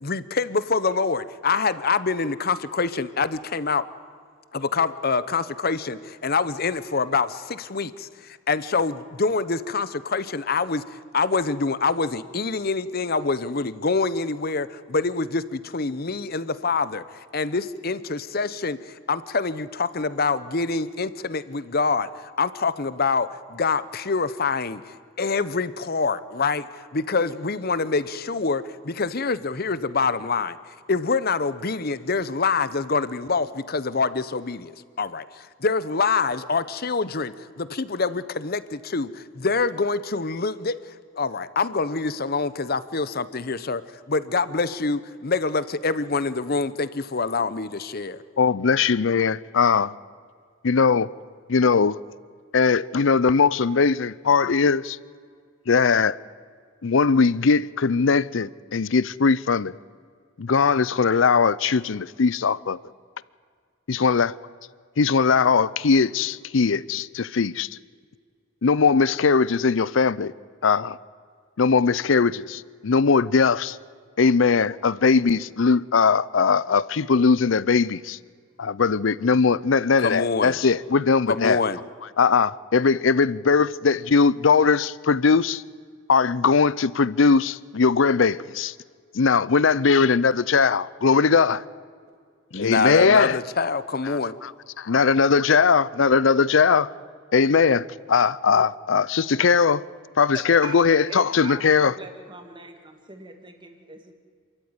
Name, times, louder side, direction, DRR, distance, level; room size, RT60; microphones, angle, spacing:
voice 1, 0.0-3.8 4.5-17.0 17.3-30.6 30.9-40.8 41.2-43.8 44.1-48.2 80.0-80.7 81.3-81.8 92.5-94.3, left 4 dB, 50° left, 0.9 m, -25 dB
voice 2, 48.4-49.9 50.6-51.1 51.5-52.0 52.5-55.0 55.7-56.2 56.8-59.7 60.4-62.8 63.9-64.3 65.0-67.7 68.6-70.3 70.6-71.0 71.6-73.8 74.2-78.2 78.6-81.6 82.2-85.6 86.1-88.7 89.1-91.6 92.5-93.4 94.1-94.5 94.8-96.9 97.3-99.8 100.2-101.9, left 5 dB, 75° left, 0.6 m, -20 dB
voice 3, 100.3-104.1, right 2 dB, 25° right, 2.3 m, -41 dB
28.0 x 13.5 x 9.7 m
head